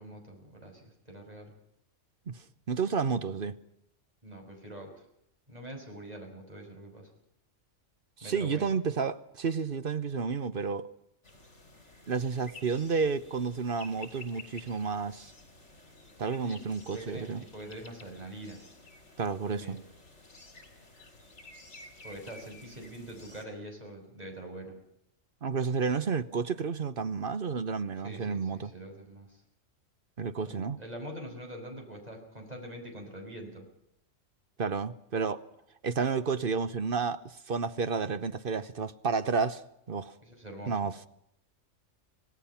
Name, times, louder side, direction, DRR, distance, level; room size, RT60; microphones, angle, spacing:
voice 1, 0.0-1.5 4.2-5.1 5.5-7.1 8.2-8.7 16.4-16.6 16.9-18.6 19.5-19.8 22.0-24.8 28.0-29.3 30.4-33.7 40.2-40.8, right 1 dB, 30° right, 2 dB, 5.8 m, -44 dB
voice 2, 2.3-3.5 8.2-10.9 12.1-15.3 16.2-17.4 19.2-19.8 25.4-28.7 30.2-30.8 34.6-35.4 35.8-39.6 39.9-40.1 40.7-41.0, right 5 dB, 45° right, 13 dB, 1.1 m, -31 dB
sound 1, 11.2-23.4, left 2 dB, 60° left, 4.2 m, -52 dB
25.5 x 17.5 x 5.8 m, 0.77 s
omnidirectional pair, 1.3 m